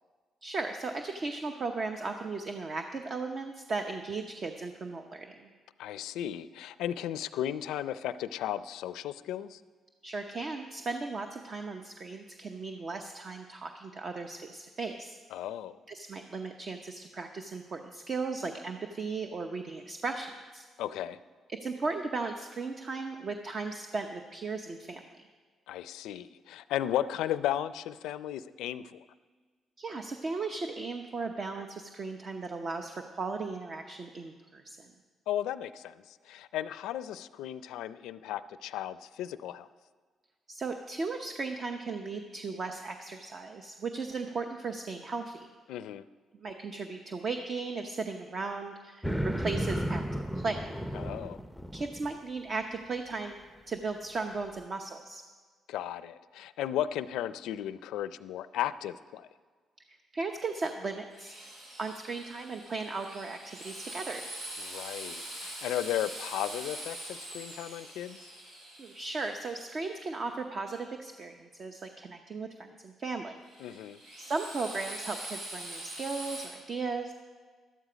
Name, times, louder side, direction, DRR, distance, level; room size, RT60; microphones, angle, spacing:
voice 1, 0.4-5.5 10.0-15.2 15.9-20.7 21.6-25.0 29.8-34.9 40.5-45.5 46.3-50.7 51.7-53.4 53.7-55.2 59.9-61.3 61.8-64.3 68.8-73.4 73.7-73.8 74.2-77.1, right 4 dB, 45° right, 5 dB, 0.8 m, -36 dB
voice 2, 5.8-9.6 15.3-15.8 20.8-21.2 25.7-29.0 35.3-39.7 45.7-46.1 50.9-51.4 55.7-59.3 64.6-68.2 73.6-74.0, left 11 dB, 90° left, 15 dB, 0.4 m, -35 dB
sound 1, 49.0-52.1, equal, ahead, 0.6 m, -33 dB
Drill, 61.1-70.0 73.4-76.4, right 1 dB, 90° right, 4.9 m, -43 dB
12.5 x 12.0 x 5.1 m, 1.5 s
cardioid pair, 90°, 0 cm